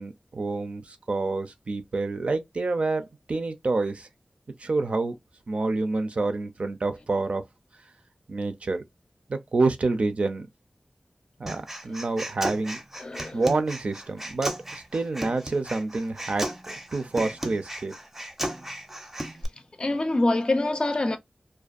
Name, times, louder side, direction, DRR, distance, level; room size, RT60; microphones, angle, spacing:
voice 1, 0.0-4.1 4.6-5.2 5.5-7.4 8.3-8.8 9.3-10.5 11.4-12.8 13.3-17.9, right 3 dB, 70° right, 0.4 m, -28 dB
Human voice, 11.5-19.4, right 1 dB, 15° right, 0.5 m, -35 dB
voice 2, 13.0-13.4 19.8-21.2, left 2 dB, 45° left, 0.4 m, -25 dB
2.5 x 2.2 x 2.3 m
wide cardioid pair, 75°, 2 cm